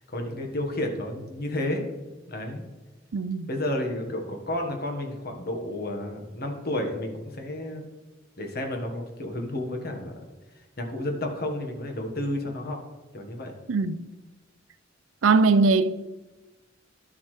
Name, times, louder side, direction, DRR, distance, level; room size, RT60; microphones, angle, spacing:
voice 1, 0.1-1.8 2.3-2.6 3.5-7.8 8.4-10.2 10.5-12.8 13.1-13.5, left 1 dB, 55° left, 1.4 m, -31 dB
voice 2, 3.1-3.5 13.7-14.0 15.2-15.9, right 4 dB, 80° right, 0.5 m, -21 dB
11.5 x 7.5 x 3.3 m
head